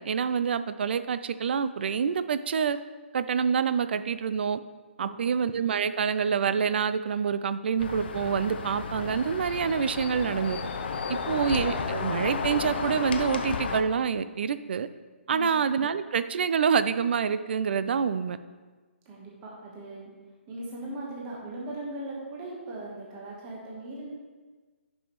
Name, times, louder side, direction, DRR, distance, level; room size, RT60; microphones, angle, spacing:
voice 1, 0.0-2.8 3.1-4.6 5.0-10.6 11.1-14.9 15.3-18.4, right 6 dB, 55° right, 13 dB, 0.4 m, -27 dB
voice 2, 5.0-5.3 11.3-11.5 15.3-15.5 19.0-20.1 20.5-24.1, right 1 dB, 20° right, -4 dB, 1.3 m, -39 dB
sound 1, 7.8-13.8, left 5 dB, 50° left, 0.6 m, -33 dB
10.5 x 5.4 x 3.1 m, 1.4 s
hypercardioid pair, 155°, 7 cm